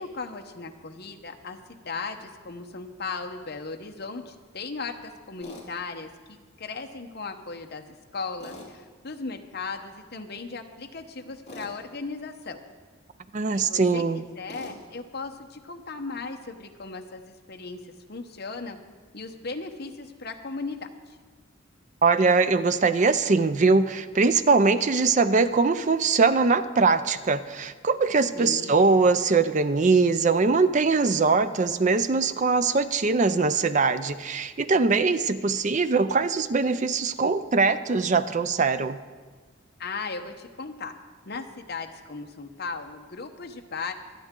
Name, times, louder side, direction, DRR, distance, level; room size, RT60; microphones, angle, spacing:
voice 1, 0.0-7.8 8.1-12.6 13.5-18.8 19.1-21.2 28.3-28.8 39.8-40.9 41.3-43.9, left 4 dB, 50° left, 4 dB, 0.9 m, -37 dB
Tools, 5.4-5.7 8.4-8.7 11.5-11.7 14.5-14.8, left 1 dB, 30° left, 2.8 m, -42 dB
voice 2, 13.3-14.2 22.0-39.0, right 4 dB, 35° right, 12 dB, 0.5 m, -22 dB
25.0 x 9.1 x 3.7 m, 1.5 s
head